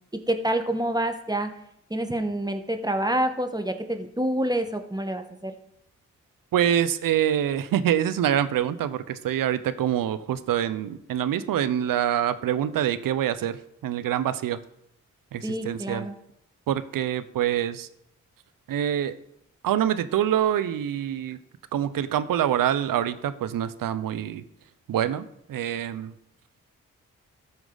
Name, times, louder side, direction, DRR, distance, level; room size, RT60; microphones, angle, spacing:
voice 1, 0.3-1.5 1.9-5.5 15.4-16.1, right 1 dB, 10° right, 7 dB, 1.4 m, -27 dB
voice 2, 6.5-14.6 15.3-16.1 16.7-17.9 18.7-19.2 19.6-21.4 21.7-24.4 24.9-26.1, right 10 dB, 75° right, 14 dB, 0.7 m, -25 dB
13.5 x 4.7 x 4.0 m, 0.78 s
supercardioid pair, 40°, 34 cm